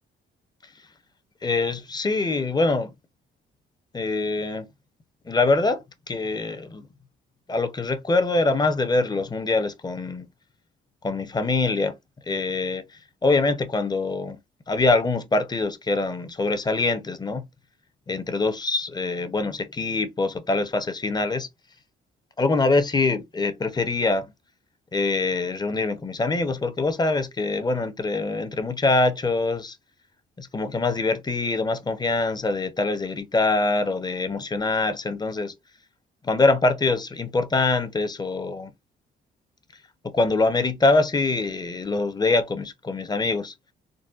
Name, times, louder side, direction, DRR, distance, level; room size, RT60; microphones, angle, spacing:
voice 1, 1.4-2.9 3.9-4.7 5.3-5.8 6.1-6.9 7.5-10.3 11.0-11.9 12.3-12.8 13.2-14.4 14.7-17.4 18.1-21.5 22.4-24.3 24.9-29.8 30.4-35.5 36.2-38.7 40.1-43.5, left 3 dB, 20° left, 0.6 m, -24 dB
3.9 x 2.1 x 2.4 m
cardioid pair, 90°, 20 cm